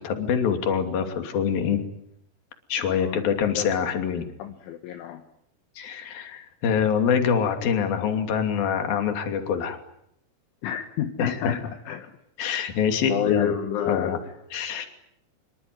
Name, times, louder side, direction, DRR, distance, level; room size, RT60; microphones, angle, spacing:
voice 1, 0.0-1.8 2.7-4.3 5.8-9.8 11.2-11.6 12.4-13.5 13.9-14.2 14.5-14.9, left 7 dB, 50° left, 6 dB, 4.1 m, -25 dB
voice 2, 2.9-3.2 3.6-3.7 4.4-5.2 10.6-12.2 13.1-14.3, left 9 dB, 70° left, 6 dB, 3.6 m, -29 dB
26.0 x 23.5 x 9.6 m, 0.76 s
omnidirectional pair, 6.0 m